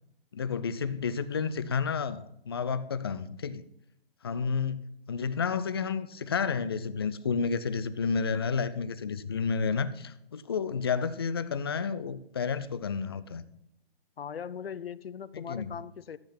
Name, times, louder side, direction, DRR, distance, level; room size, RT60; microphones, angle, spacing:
voice 1, 0.3-3.6 4.2-13.4 15.3-15.7, left 5 dB, 25° left, 0.4 m, -31 dB
voice 2, 14.2-16.2, left 7 dB, 75° left, 0.7 m, -39 dB
13.0 x 8.4 x 4.3 m
hypercardioid pair, 150°, 30 cm